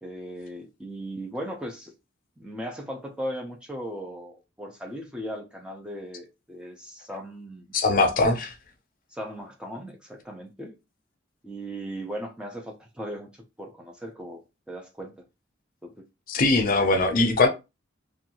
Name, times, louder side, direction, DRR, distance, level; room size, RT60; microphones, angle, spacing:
voice 1, 0.0-1.9 2.4-7.7 9.1-10.8 11.4-14.4 14.7-15.2 15.8-16.1, equal, 5° right, 0.4 m, -37 dB
voice 2, 7.7-8.5 16.3-17.5, left 3 dB, 45° left, 0.5 m, -21 dB
2.6 x 2.3 x 2.8 m
head